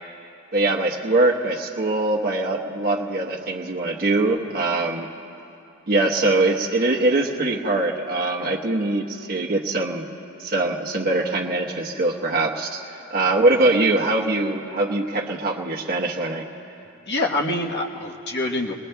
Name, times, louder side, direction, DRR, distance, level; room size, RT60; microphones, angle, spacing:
voice 1, 0.5-5.1 5.9-10.1 10.4-16.5, right 2 dB, 45° right, -3 dB, 1.1 m, -22 dB
voice 2, 17.1-18.7, left 2 dB, 50° left, 1 dB, 1.2 m, -26 dB
27.5 x 22.0 x 2.3 m, 2.8 s
head